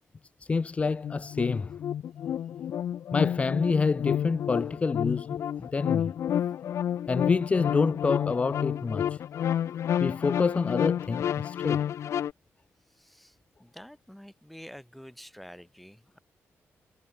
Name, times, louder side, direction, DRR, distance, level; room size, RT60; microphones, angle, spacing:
voice 1, 0.4-1.8 3.1-6.1 7.1-9.2 10.0-11.8, left 4 dB, 25° left, 0.7 m, -28 dB
sound 1, 1.0-12.3, left 9 dB, 70° left, 0.9 m, -30 dB
voice 2, 12.9-16.2, equal, ahead, 2.6 m, -48 dB
wide cardioid pair, 150°, 5 cm